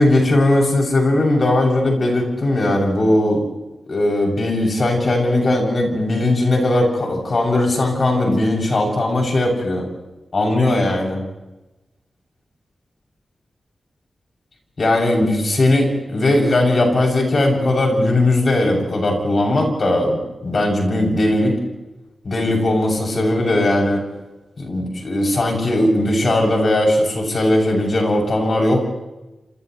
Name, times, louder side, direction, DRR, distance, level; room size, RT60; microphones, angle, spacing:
voice 1, 0.0-3.4 3.9-9.9 10.3-11.2 14.8-21.5 22.2-24.0 24.6-28.8, left 1 dB, 50° left, 0 dB, 7.8 m, -18 dB
30.0 x 27.5 x 3.3 m, 1.0 s
wide cardioid pair, 80°, 0 cm